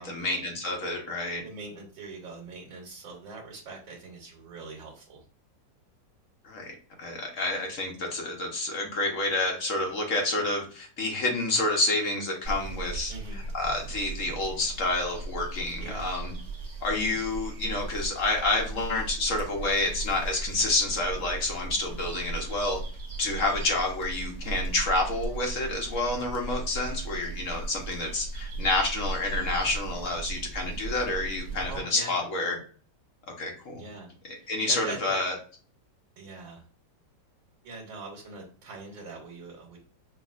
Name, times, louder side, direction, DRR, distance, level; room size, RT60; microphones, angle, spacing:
voice 1, 0.0-1.4 6.4-13.1 13.5-16.3 16.8-22.8 23.2-32.6 33.4-33.8 34.5-35.3, left 2 dB, 50° left, 1 dB, 1.1 m, -29 dB
voice 2, 1.4-5.2 13.1-13.4 15.8-16.1 23.4-23.7 31.7-32.3 33.7-34.1 34.4-35.2 36.2-36.6 37.6-39.8, right 3 dB, 85° right, -1 dB, 1.7 m, -42 dB
sound 1, 12.4-31.8, right 3 dB, 20° right, 1.4 m, -37 dB
5.9 x 2.7 x 2.4 m, 0.43 s
omnidirectional pair, 2.0 m